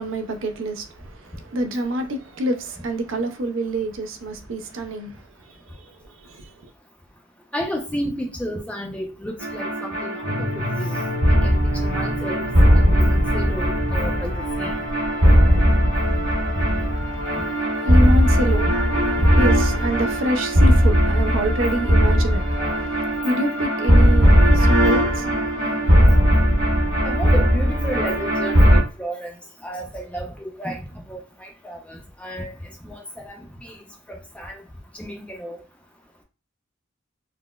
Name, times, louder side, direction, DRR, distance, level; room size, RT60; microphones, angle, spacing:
voice 1, 0.0-6.7 16.0-26.2, right 1 dB, 60° right, 0.4 m, -28 dB
voice 2, 7.5-10.3 10.8-11.0 11.4-12.4 12.7-14.3 14.6-14.7 27.0-29.3 29.6-30.8 31.1-32.5 32.8-33.8 34.3-34.6 34.9-35.6, equal, 5° left, 0.4 m, -32 dB
sound 1, 9.4-28.8, equal, 80° right, 1.6 m, -18 dB
sound 2, 10.2-16.1, equal, 75° left, 1.0 m, -32 dB
3.9 x 2.0 x 2.3 m
head